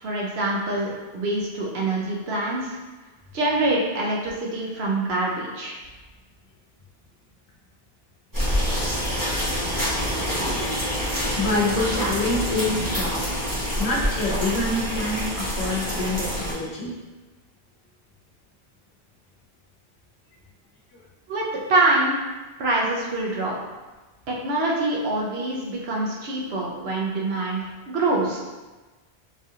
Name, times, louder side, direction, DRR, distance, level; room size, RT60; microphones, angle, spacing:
voice 1, 0.0-2.8 3.3-5.7 21.3-22.2 22.6-23.5 24.3-27.6 27.9-28.4, right 2 dB, 80° right, -3 dB, 0.9 m, -25 dB
sound 1, 8.3-16.5, equal, 20° right, 1.1 m, -26 dB
voice 2, 10.5-11.0 11.3-13.3 13.8-16.9 20.9-21.0 26.0-26.1, left 2 dB, 85° left, -2 dB, 1.0 m, -27 dB
3.2 x 2.4 x 2.7 m, 1.2 s
omnidirectional pair, 1.0 m